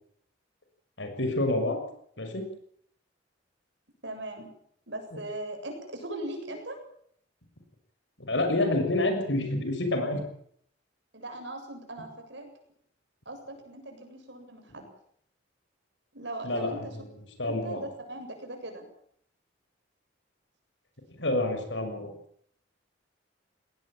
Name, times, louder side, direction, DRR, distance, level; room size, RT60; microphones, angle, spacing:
voice 1, 1.0-1.8 2.2-2.5 8.2-10.2 16.4-17.1 17.4-17.8 21.2-22.1, left 2 dB, 65° left, 5 dB, 6.5 m, -28 dB
voice 2, 4.0-4.5 4.9-6.8 11.1-12.5 13.3-14.9 16.1-16.9 17.4-18.8, right 1 dB, 65° right, 4 dB, 7.8 m, -39 dB
20.0 x 18.5 x 8.9 m, 0.65 s
head